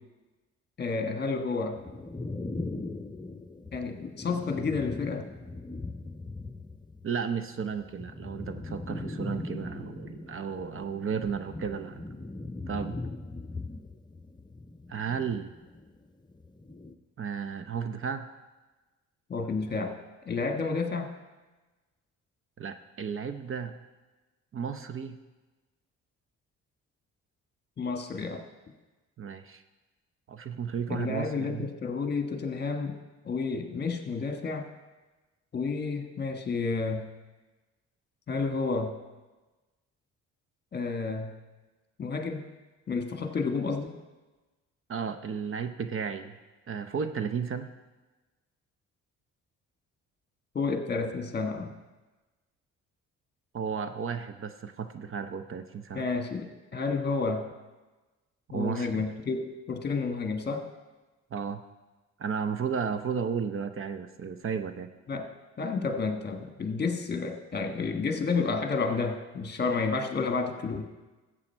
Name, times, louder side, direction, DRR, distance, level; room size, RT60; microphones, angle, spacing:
voice 1, 0.8-1.8 3.7-5.3 19.3-19.9 20.2-21.1 27.8-28.4 30.9-32.9 33.2-34.7 35.5-37.1 38.3-38.9 40.7-41.3 42.0-42.4 42.9-44.0 50.5-51.7 55.9-57.4 58.5-60.6 65.1-65.3 65.6-70.9, left 4 dB, 35° left, 5 dB, 1.4 m, -30 dB
sound 1, 1.8-7.1 7.3-15.9 16.3-16.9, left 2 dB, 15° left, 0.7 m, -40 dB
voice 2, 7.0-12.0 12.7-13.0 14.9-15.5 17.2-18.3 22.6-23.8 24.5-25.2 29.2-29.6 30.3-31.7 44.9-46.3 46.7-47.7 53.5-56.0 58.5-59.1 61.3-61.6 62.2-64.9, right 6 dB, 45° right, 9 dB, 0.7 m, -33 dB
14.0 x 7.7 x 4.5 m, 1.2 s
cardioid pair, 90°, 30 cm